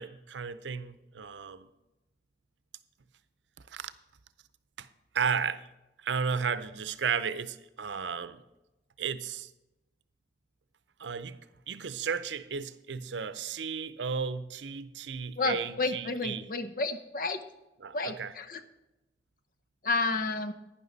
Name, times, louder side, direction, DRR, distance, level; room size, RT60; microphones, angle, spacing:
voice 1, 0.0-1.7 3.7-3.9 4.8-4.9 5.1-5.7 6.0-8.4 9.0-9.5 11.0-11.4 11.7-16.5 17.8-18.3, right 6 dB, 90° right, 0.6 m, -34 dB
voice 2, 15.4-17.4 17.9-18.6 19.8-20.5, left 3 dB, 50° left, 0.8 m, -31 dB
11.0 x 10.0 x 4.0 m
head